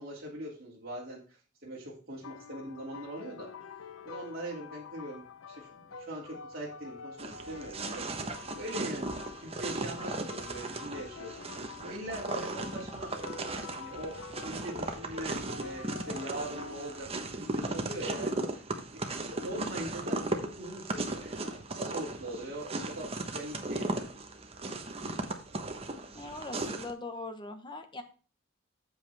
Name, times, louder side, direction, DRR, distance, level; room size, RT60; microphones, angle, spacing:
voice 1, 0.0-3.5 4.0-13.1 13.7-18.6 18.9-19.0 19.3-24.1, right 1 dB, 45° right, -5 dB, 2.7 m, -42 dB
sound 1, 2.1-17.0, left 5 dB, 85° left, 0.8 m, -47 dB
sound 2, 7.2-26.9, right 2 dB, 30° right, 1.1 m, -37 dB
voice 2, 26.1-28.0, left 2 dB, 25° left, 7 dB, 1.1 m, -41 dB
8.3 x 7.7 x 3.5 m, 0.37 s
head